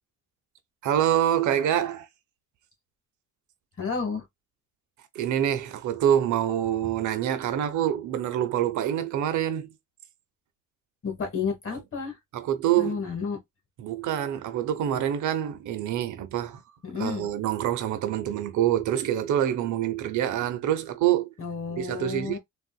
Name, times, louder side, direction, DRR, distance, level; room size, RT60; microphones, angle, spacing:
voice 1, 0.8-2.1 5.1-9.7 12.3-13.0 13.8-16.6 17.0-21.3 21.8-22.4, right 11 dB, 75° right, 0.7 m, -26 dB
voice 2, 3.8-4.3 11.0-12.2 12.8-13.4 16.8-17.3 21.4-22.4, left 5 dB, 45° left, 1.4 m, -31 dB
3.5 x 2.5 x 2.3 m
cardioid pair, 90°, 30 cm